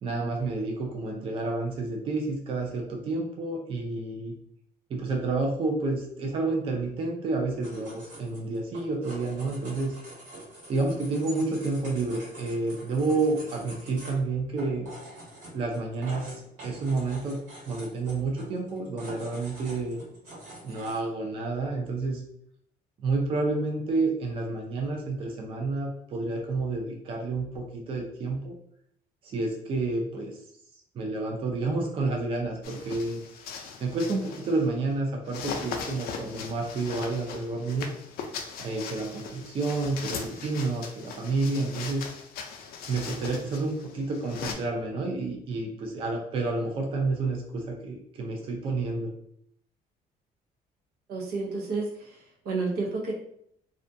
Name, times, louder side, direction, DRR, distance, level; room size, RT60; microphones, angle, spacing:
voice 1, 0.0-4.3 4.9-10.0 10.7-14.9 15.5-17.4 17.6-20.0 20.6-22.2 23.0-28.6 29.2-30.4 30.9-33.2 33.8-37.9 38.6-42.1 42.9-49.1, right 3 dB, 35° right, 1 dB, 0.4 m, -30 dB
sound 1, 7.6-21.0, right 1 dB, 55° right, 1.2 m, -46 dB
sound 2, 32.6-34.7 35.3-44.5, left 6 dB, 70° left, 0.4 m, -39 dB
voice 2, 51.1-53.1, right 3 dB, 90° right, -1 dB, 0.7 m, -31 dB
2.4 x 2.2 x 2.6 m, 0.69 s
cardioid pair, 175°, 16 cm